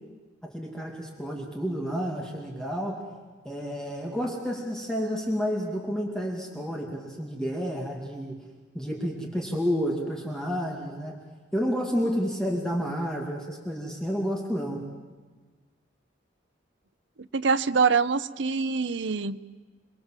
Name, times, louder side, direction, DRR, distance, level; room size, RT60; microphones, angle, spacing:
voice 1, 0.4-3.0 3.4-8.4 8.7-11.2 11.5-14.8, equal, 5° left, -1 dB, 2.5 m, -30 dB
voice 2, 17.2-19.4, right 5 dB, 70° right, 13 dB, 0.7 m, -25 dB
28.0 x 20.5 x 7.6 m, 1.3 s
head